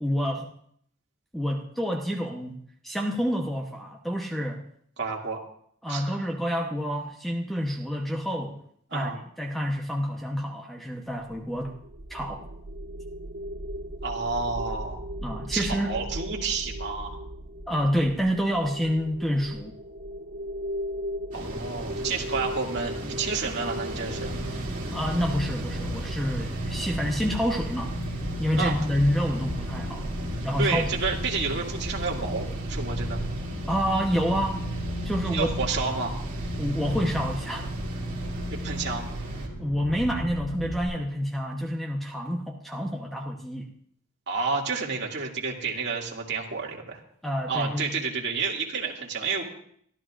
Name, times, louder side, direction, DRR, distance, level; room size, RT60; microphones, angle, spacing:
voice 1, 0.0-0.5 1.3-2.6 2.8-4.6 5.8-8.6 8.9-11.8 12.1-12.5 15.2-15.9 17.7-19.8 24.9-27.9 28.4-30.1 30.4-30.9 33.7-34.6 35.0-35.5 36.6-37.7 39.6-43.7 47.2-47.9, equal, ahead, 1 dB, 0.9 m, -28 dB
voice 2, 5.0-5.4 5.9-6.2 8.9-9.2 14.0-15.0 15.5-17.2 21.3-24.3 28.5-28.8 30.6-33.2 35.2-36.2 38.5-39.1 44.3-47.0 47.5-49.4, right 4 dB, 55° right, -2 dB, 2.4 m, -30 dB
sound 1, 11.2-26.4, equal, 70° right, 1.8 m, -37 dB
sound 2, 21.3-39.5, right 1 dB, 35° right, 2.7 m, -37 dB
sound 3, 24.1-40.8, equal, 75° left, 6.0 m, -34 dB
23.5 x 13.5 x 2.5 m, 0.65 s
head